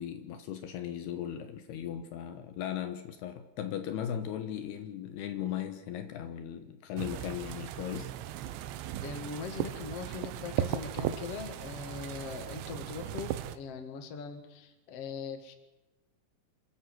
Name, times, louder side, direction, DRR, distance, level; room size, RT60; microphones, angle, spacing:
voice 1, 0.0-8.1, left 10 dB, 70° left, 8 dB, 2.8 m, -37 dB
sound 1, 7.0-13.6, right 12 dB, 80° right, 3.0 m, -37 dB
voice 2, 9.0-15.5, left 6 dB, 50° left, 7 dB, 1.9 m, -41 dB
27.5 x 12.0 x 7.9 m, 1.0 s
omnidirectional pair, 5.3 m